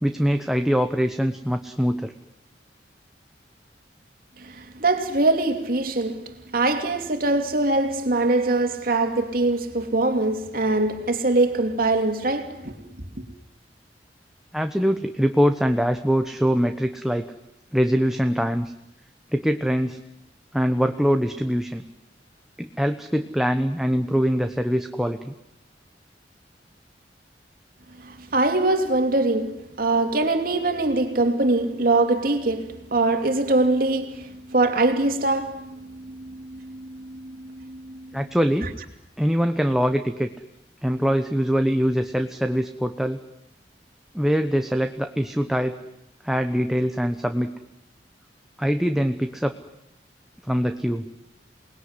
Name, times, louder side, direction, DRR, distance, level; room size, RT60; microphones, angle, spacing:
voice 1, 0.0-2.1 14.5-17.3 17.7-18.7 19.3-20.0 20.5-21.8 22.6-25.3 38.1-38.7 39.2-40.3 40.8-43.2 44.1-45.8 46.2-47.5 48.6-49.6 50.4-51.1, equal, ahead, 1.0 m, -23 dB
voice 2, 4.6-6.2 6.5-12.7 28.0-38.0, right 2 dB, 55° right, 2.8 m, -23 dB
28.5 x 20.5 x 9.8 m
head